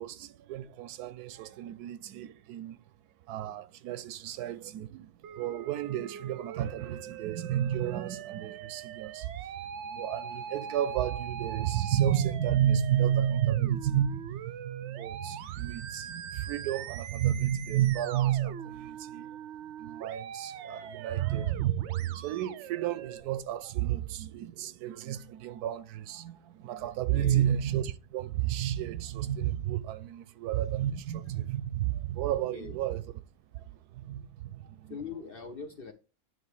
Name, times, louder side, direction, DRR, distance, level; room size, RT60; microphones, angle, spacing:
voice 1, 0.0-2.8 3.3-9.5 9.7-19.4 19.8-33.1 33.5-35.0, right 11 dB, 85° right, 1.1 m, -31 dB
Musical instrument, 5.2-23.2, right 7 dB, 70° right, 0.7 m, -43 dB
voice 2, 27.1-27.5 32.5-32.8 34.9-35.9, left 6 dB, 60° left, 0.6 m, -41 dB
9.0 x 3.2 x 4.8 m
omnidirectional pair, 1.6 m